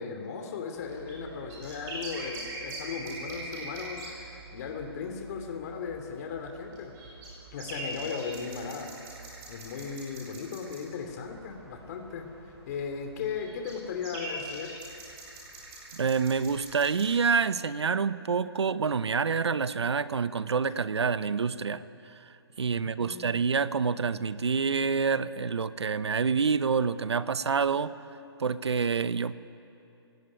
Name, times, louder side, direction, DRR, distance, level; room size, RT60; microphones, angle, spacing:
voice 1, 0.0-6.9 7.5-8.9 9.2-14.7 22.7-23.4, left 5 dB, 40° left, 4 dB, 2.8 m, -37 dB
sound 1, 0.8-17.1, right 2 dB, 25° right, 7.6 m, -43 dB
voice 2, 15.9-21.8 22.6-27.9 28.4-29.3, right 5 dB, 85° right, 15 dB, 1.0 m, -27 dB
29.0 x 17.5 x 9.8 m, 2.8 s
hypercardioid pair, 155°, 14 cm